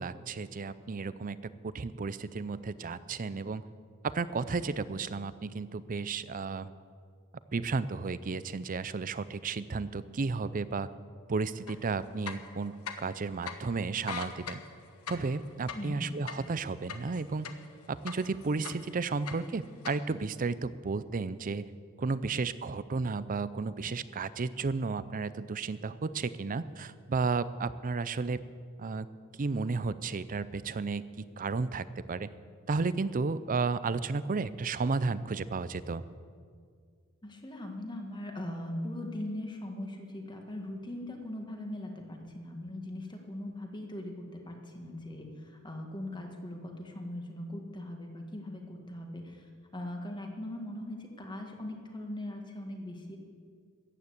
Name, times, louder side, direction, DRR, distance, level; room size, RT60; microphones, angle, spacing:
voice 1, 0.0-3.6 4.0-6.7 7.5-10.9 11.3-14.6 15.1-17.5 17.9-21.7 22.0-28.4 28.8-29.1 29.4-32.3 32.7-36.0, right 4 dB, 40° right, 16 dB, 0.5 m, -33 dB
sound 1, 11.7-11.8 12.2-13.2 13.5-13.6 13.9-17.7 18.1-18.9 19.2-20.0, left 6 dB, 85° left, 1.1 m, -40 dB
voice 2, 15.7-16.1 37.2-49.4 49.7-53.2, left 1 dB, 20° left, 2 dB, 1.8 m, -40 dB
14.0 x 9.3 x 8.2 m, 2.1 s
head